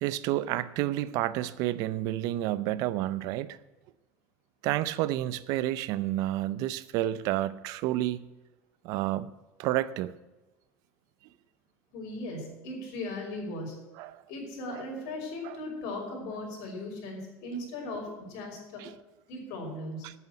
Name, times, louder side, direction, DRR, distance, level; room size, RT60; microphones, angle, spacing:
voice 1, 0.0-3.6 4.6-8.3 8.8-9.3 9.6-10.2 14.0-14.1 15.5-15.6 18.8-18.9 20.0-20.1, right 14 dB, 60° right, 16 dB, 0.6 m, -30 dB
voice 2, 11.9-13.8 14.3-18.8 19.3-20.1, left 2 dB, 70° left, -1 dB, 5.7 m, -38 dB
9.4 x 8.2 x 9.3 m, 1.1 s
cardioid pair, 150°, 7 cm